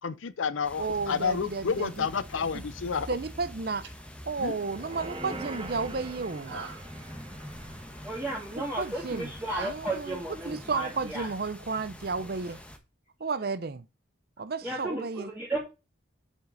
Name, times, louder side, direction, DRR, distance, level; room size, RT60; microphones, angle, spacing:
voice 1, 0.0-3.1 4.4-4.6, left 6 dB, 80° left, 0.6 m, -30 dB
sound 1, 0.6-12.8, equal, 5° left, 1.2 m, -45 dB
voice 2, 0.8-2.1 3.1-3.9 4.2-6.5 8.6-9.3 9.6-10.2 10.5-12.6 13.2-13.8 14.4-15.3, right 4 dB, 50° right, 0.5 m, -32 dB
sound 2, 3.5-9.7, right 4 dB, 70° right, 2.5 m, -46 dB
sound 3, 4.3-9.7 10.1-10.2, right 2 dB, 25° right, 1.2 m, -44 dB
voice 3, 8.0-11.3 13.4-13.5 14.6-15.6, right 2 dB, 10° right, 2.7 m, -34 dB
8.1 x 7.5 x 3.9 m
head